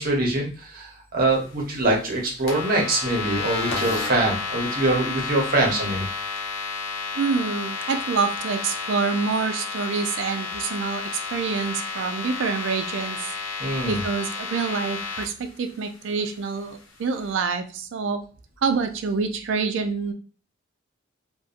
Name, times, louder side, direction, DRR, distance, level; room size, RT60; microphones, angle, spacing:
voice 1, 0.0-6.1 13.6-14.0, right 2 dB, 45° right, -1 dB, 0.7 m, -24 dB
sound 1, 2.5-15.2, left 4 dB, 70° left, 0.6 m, -31 dB
voice 2, 7.2-13.3 13.9-18.2 18.6-20.1, right 5 dB, 65° right, 7 dB, 0.4 m, -27 dB
2.6 x 2.1 x 2.4 m, 0.38 s
head